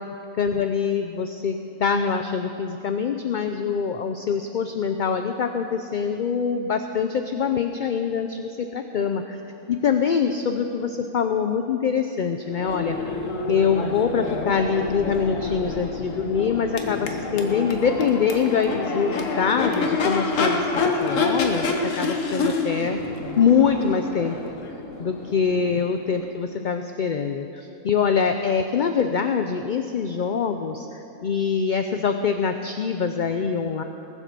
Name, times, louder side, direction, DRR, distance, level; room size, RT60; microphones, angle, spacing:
voice 1, 0.4-9.4 9.7-13.2 13.5-23.0 23.4-24.4 25.0-33.8, left 6 dB, 50° left, 7 dB, 0.6 m, -24 dB
Crowd / Race car auto racing / Accelerating revving vroom, 12.5-26.3, left 3 dB, 85° left, 1.5 m, -28 dB
20.0 x 7.3 x 6.7 m, 2.9 s
omnidirectional pair, 1.3 m